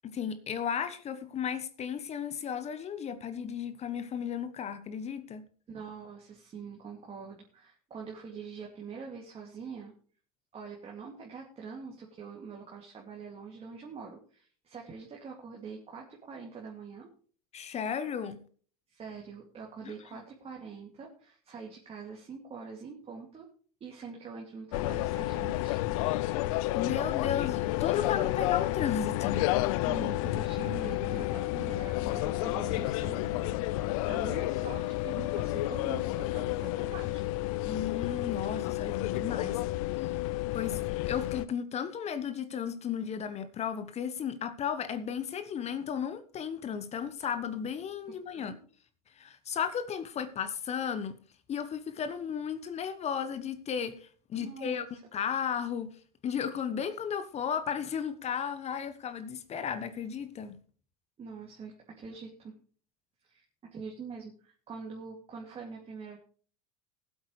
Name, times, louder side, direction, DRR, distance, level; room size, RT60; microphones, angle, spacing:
voice 1, 0.0-5.4 17.5-18.4 19.8-20.2 26.0-29.5 37.6-39.6 40.0-40.1 40.5-48.6 49.2-51.2 51.5-54.9 55.1-55.9 56.2-60.6, left 7 dB, 35° left, 11 dB, 1.2 m, -34 dB
voice 2, 5.7-9.9 10.5-17.1 18.9-23.5 23.8-25.8 29.8-37.2 48.1-48.6 54.4-54.9 61.2-62.5 63.2-66.2, right 5 dB, 30° right, -1 dB, 2.6 m, -44 dB
sound 1, 24.7-41.5, left 17 dB, 65° left, 0.5 m, -31 dB
20.0 x 8.2 x 3.3 m, 0.43 s
hypercardioid pair, 80°, 19 cm